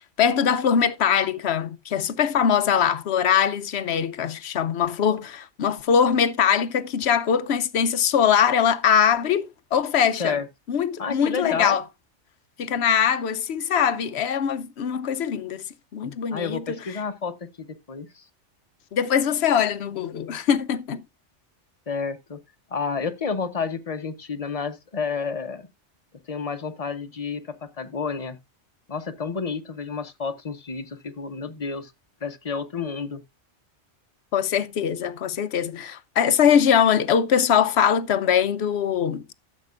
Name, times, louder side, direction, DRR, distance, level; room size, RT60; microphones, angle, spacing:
voice 1, 0.2-10.4 10.7-11.8 12.6-15.6 15.9-16.6 18.9-21.0 34.3-39.3, left 8 dB, 65° left, 0.9 m, -22 dB
voice 2, 10.1-10.4 11.0-11.8 16.3-18.2 21.9-22.4 22.7-25.7 26.3-28.4 28.9-31.9 32.2-33.2, left 5 dB, 35° left, 1.0 m, -30 dB
14.0 x 7.4 x 2.5 m
omnidirectional pair, 1.2 m